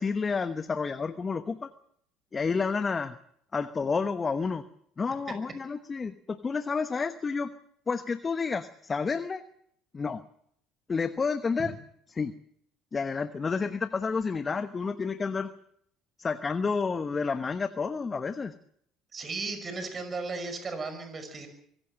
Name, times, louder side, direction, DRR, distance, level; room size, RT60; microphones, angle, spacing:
voice 1, 0.0-1.7 2.3-3.2 3.5-4.6 5.0-7.5 7.9-9.4 9.9-10.2 10.9-11.7 12.1-12.3 12.9-15.5 16.2-18.5, left 5 dB, 30° left, 11 dB, 1.0 m, -30 dB
voice 2, 19.1-21.5, right 3 dB, 35° right, 8 dB, 5.9 m, -35 dB
24.5 x 15.5 x 7.4 m, 0.70 s
hypercardioid pair, 65°, 0 cm